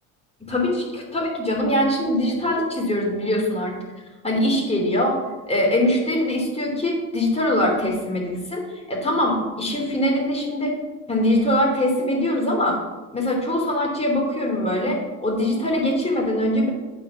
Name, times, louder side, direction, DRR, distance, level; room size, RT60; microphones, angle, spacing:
voice 1, 0.4-3.7 4.2-5.2 5.5-10.7 11.1-12.8 13.1-16.7, left 1 dB, 15° left, -1 dB, 3.3 m, -22 dB
9.0 x 4.9 x 7.1 m, 1.2 s
supercardioid pair, 100°, 42 cm